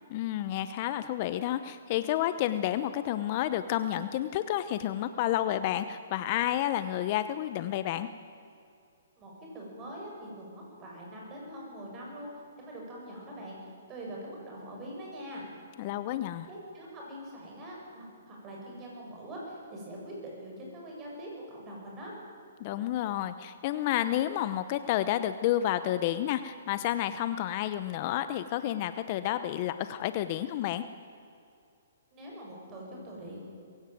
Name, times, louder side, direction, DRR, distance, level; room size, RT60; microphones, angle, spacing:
voice 1, 0.1-8.1 15.8-16.5 22.6-30.8, left 12 dB, 35° left, 12 dB, 0.8 m, -30 dB
voice 2, 9.2-12.3 12.6-15.5 16.5-22.1 32.1-33.4, right 1 dB, 20° right, -2 dB, 7.7 m, -43 dB
22.0 x 16.5 x 9.3 m, 2.5 s
hypercardioid pair, 150°, 0 cm